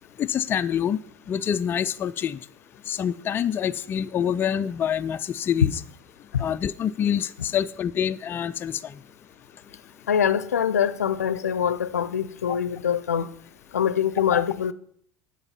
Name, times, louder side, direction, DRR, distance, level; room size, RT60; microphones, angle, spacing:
voice 1, 0.2-1.0 1.3-2.4 2.9-5.7 6.4-8.7 14.3-14.4, left 9 dB, 25° left, 0.3 m, -26 dB
voice 2, 10.1-13.3 13.7-14.7, left 8 dB, 75° left, 0.5 m, -24 dB
10.5 x 5.3 x 5.6 m
figure-of-eight pair, 75°, 9 cm